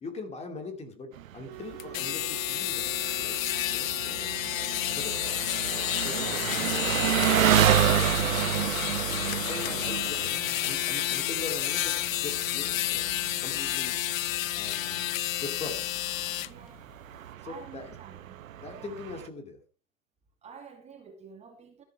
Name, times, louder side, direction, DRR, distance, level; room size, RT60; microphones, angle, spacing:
voice 1, 0.0-3.4 3.7-4.5 4.9-5.5 5.9-8.8 9.2-10.3 10.6-13.1 13.4-14.0 14.6-15.1 15.4-15.8 17.4-17.8 18.6-19.6, left 3 dB, 15° left, 2.5 m, -41 dB
Engine, 1.2-19.3, right 11 dB, 80° right, 1.1 m, -31 dB
sound 1, 1.4-5.3, right 15 dB, 45° right, 1.2 m, -46 dB
sound 2, 1.8-16.5, left 15 dB, 80° left, 0.7 m, -30 dB
voice 2, 16.4-16.9 17.4-19.0 20.4-21.8, right 6 dB, 15° right, 2.6 m, -50 dB
14.5 x 10.0 x 4.6 m
supercardioid pair, 150°, 40 cm